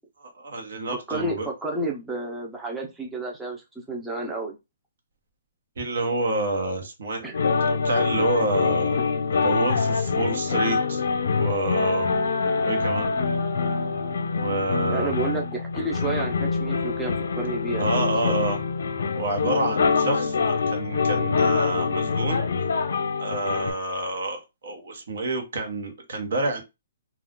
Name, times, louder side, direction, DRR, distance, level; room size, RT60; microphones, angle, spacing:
voice 1, 0.2-1.5 5.8-7.3 7.8-9.0 9.3-11.0 11.4-12.1 12.6-13.1 14.4-15.1 17.8-18.6 19.1-22.4 23.2-26.6, right 2 dB, 70° right, 1.0 m, -28 dB
voice 2, 1.1-4.6 7.2-7.4 14.9-18.3, right 2 dB, 5° right, 0.6 m, -31 dB
sound 1, 7.3-23.7, left 4 dB, 75° left, 0.6 m, -25 dB
2.4 x 2.3 x 3.7 m
hypercardioid pair, 155°, 0 cm